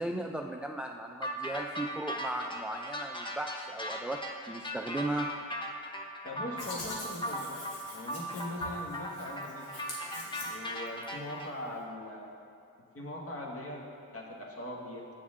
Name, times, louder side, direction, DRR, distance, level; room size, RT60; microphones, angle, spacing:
voice 1, 0.0-4.2 4.5-5.3, right 1 dB, 5° right, 3 dB, 0.3 m, -36 dB
sound 1, 1.2-11.5, equal, 15° left, 0.8 m, -38 dB
voice 2, 6.2-7.6 7.9-9.7 10.0-12.3 12.9-13.9 14.1-15.1, left 1 dB, 40° left, -1 dB, 1.5 m, -41 dB
Hands, 6.6-11.0, left 2 dB, 90° left, 1.5 m, -45 dB
8.0 x 7.0 x 3.6 m, 2.4 s
cardioid pair, 65°, 36 cm